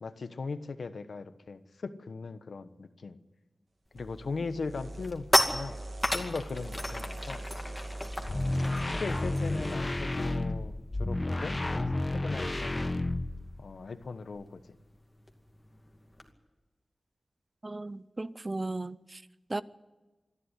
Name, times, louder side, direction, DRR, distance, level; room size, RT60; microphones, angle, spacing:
voice 1, 0.0-3.2 3.9-5.3 5.5-5.8 6.1-7.4 8.2-11.6 11.9-13.0 13.6-14.6, left 4 dB, 75° left, 1.2 m, -39 dB
sound 1, 3.9-4.2 4.6-10.5 10.8-11.0 11.3-16.3, left 1 dB, 15° left, 2.4 m, -34 dB
sound 2, 4.0-9.8, right 1 dB, 60° right, 1.9 m, -42 dB
sound 3, 8.1-13.6, left 2 dB, 30° left, 0.9 m, -31 dB
voice 2, 17.6-19.2 19.5-19.6, right 2 dB, 30° right, 0.6 m, -36 dB
26.5 x 11.0 x 10.0 m
wide cardioid pair, 95°, 0 cm